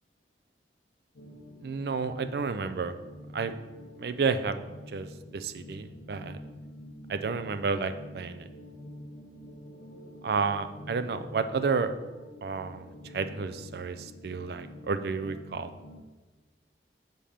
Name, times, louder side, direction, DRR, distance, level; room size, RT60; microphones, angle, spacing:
sound 1, 1.2-16.0, equal, 80° left, 0.6 m, -47 dB
voice 1, 1.6-2.9 3.3-3.5 4.0-4.6 4.9-5.1 5.3-6.4 7.1-8.5 10.2-11.9 12.4-12.8 13.1-15.7, right 5 dB, 60° right, 11 dB, 0.4 m, -31 dB
5.2 x 4.3 x 5.0 m, 1.2 s
head